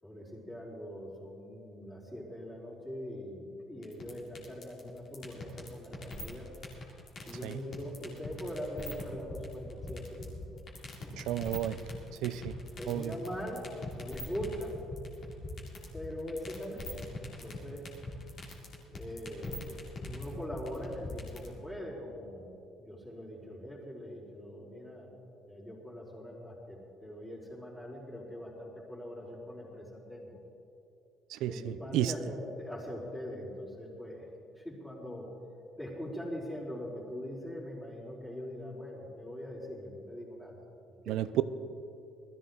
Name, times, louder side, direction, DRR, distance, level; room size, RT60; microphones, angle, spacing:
voice 1, 0.0-6.5 7.2-10.6 11.0-11.2 12.8-13.7 13.9-14.8 15.9-16.9 17.4-17.9 18.9-25.1 25.5-30.4 31.5-34.3 34.5-35.3 35.8-40.6 41.0-41.3, equal, 10° left, -13 dB, 4.0 m, -42 dB
sound 1, 3.8-21.5, left 2 dB, 35° left, 2.6 m, -41 dB
voice 2, 11.2-11.8 12.2-12.5 12.9-13.1 31.3-32.1 41.1-41.3, right 12 dB, 70° right, 14 dB, 0.6 m, -32 dB
19.5 x 14.0 x 3.9 m, 2.8 s
cardioid pair, 155°, 0 cm